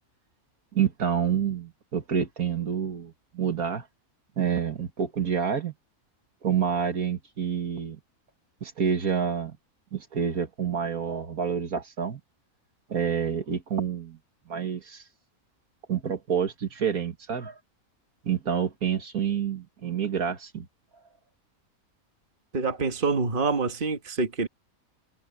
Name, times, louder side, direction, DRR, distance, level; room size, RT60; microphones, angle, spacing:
voice 1, 0.7-3.8 4.4-5.7 6.4-8.0 8.6-9.6 9.9-12.2 12.9-14.2 14.5-15.0 15.9-17.5 18.2-20.7, right 8 dB, 80° right, 2.3 m, -28 dB
voice 2, 22.5-24.5, right 4 dB, 35° right, 1.7 m, -26 dB
omnidirectional pair, 1.5 m